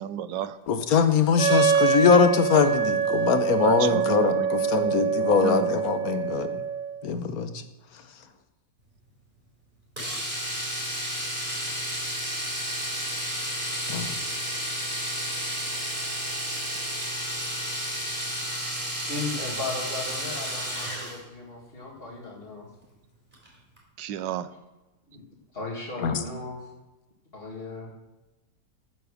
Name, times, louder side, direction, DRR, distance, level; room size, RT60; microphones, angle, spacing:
voice 1, 0.0-0.5 3.6-4.5 4.7-4.9 5.4-5.7 24.0-24.5, right 10 dB, 85° right, 13 dB, 1.4 m, -32 dB
voice 2, 0.7-6.6 7.0-7.5 13.9-14.1 26.0-26.2, left 6 dB, 60° left, 9 dB, 1.4 m, -22 dB
Wind instrument woodwind instrument, 1.4-7.0, right 6 dB, 45° right, 1.9 m, -25 dB
Domestic sounds home sounds, 10.0-21.2 23.3-23.5 23.8-23.9, equal, 25° right, 4.1 m, -31 dB
voice 3, 19.1-22.7 25.1-25.2 25.5-26.7 27.3-27.9, left 3 dB, 30° left, -6 dB, 2.3 m, -36 dB
13.5 x 8.1 x 6.5 m, 1.0 s
omnidirectional pair, 1.9 m